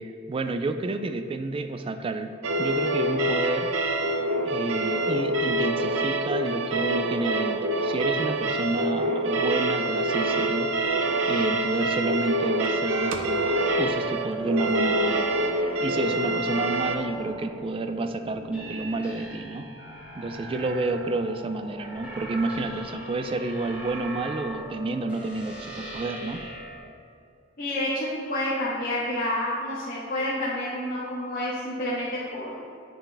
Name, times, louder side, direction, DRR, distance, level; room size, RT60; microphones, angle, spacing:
voice 1, 0.0-2.3 2.6-3.7 4.5-15.3 15.8-19.7 20.2-26.4, right 2 dB, 25° right, 8 dB, 0.3 m, -30 dB
sound 1, 2.4-17.0, right 1 dB, 75° right, 0.6 m, -26 dB
sound 2, 12.8-26.8, right 1 dB, 5° right, 1.3 m, -40 dB
voice 2, 27.6-32.5, left 1 dB, 45° left, -8 dB, 1.4 m, -29 dB
9.1 x 5.6 x 3.4 m, 2.5 s
head